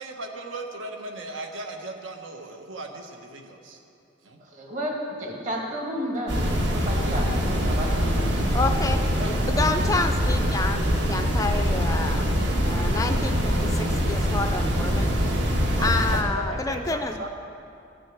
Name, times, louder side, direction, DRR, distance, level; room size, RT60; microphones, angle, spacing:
voice 1, 0.0-3.8 4.2-4.4 9.2-9.3 15.8-17.3, right 2 dB, 75° right, 3 dB, 1.2 m, -37 dB
voice 2, 4.4-6.4 6.7-8.4, equal, 40° right, -1 dB, 2.0 m, -32 dB
sound 1, 6.3-16.2, equal, 55° right, 1.5 m, -24 dB
voice 3, 8.5-12.3 12.6-15.1 15.8-17.3, left 3 dB, 15° left, 7 dB, 0.3 m, -29 dB
14.0 x 6.4 x 8.6 m, 2.6 s
head